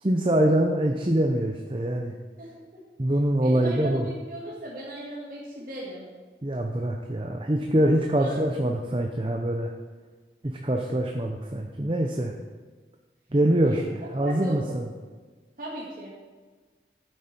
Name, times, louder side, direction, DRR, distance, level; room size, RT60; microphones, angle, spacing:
voice 1, 0.0-2.1 3.0-4.1 6.4-9.7 10.4-12.3 13.3-13.8 14.1-14.9, right 1 dB, 30° right, 2 dB, 0.7 m, -24 dB
voice 2, 3.4-6.1 8.1-8.4 8.9-9.0 13.6-13.8 14.2-14.8 15.6-16.1, right 1 dB, 50° right, -6 dB, 1.9 m, -37 dB
12.0 x 8.7 x 4.5 m, 1.4 s
head